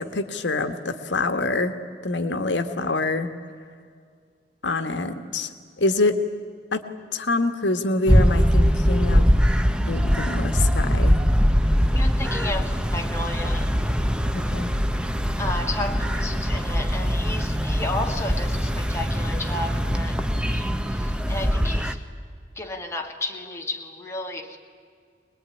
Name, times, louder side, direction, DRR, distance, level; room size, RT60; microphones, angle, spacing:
voice 1, 0.0-1.7 2.0-3.3 4.6-5.5 5.8-6.1 6.7-6.8 7.1-9.3 9.9-11.2 14.3-14.7, left 2 dB, 90° left, 8 dB, 1.5 m, -25 dB
sound 1, 8.1-21.9, equal, 5° right, 0.8 m, -22 dB
voice 2, 11.9-13.7 15.4-22.0 22.6-24.6, left 2 dB, 15° left, 2 dB, 1.8 m, -33 dB
24.0 x 20.5 x 9.8 m, 2.1 s
head